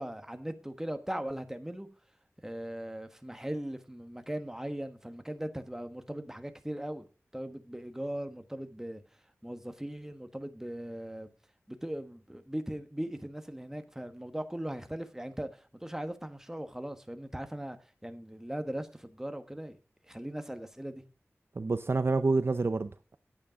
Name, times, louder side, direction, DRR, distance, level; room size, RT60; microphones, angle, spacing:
voice 1, 0.0-1.9 2.4-9.0 9.4-11.3 11.7-17.8 18.0-19.8 20.1-21.0, right 1 dB, 10° right, 1.3 m, -39 dB
voice 2, 21.6-23.2, right 3 dB, 50° right, 0.6 m, -28 dB
9.7 x 8.7 x 5.1 m
wide cardioid pair, 75°, 5 cm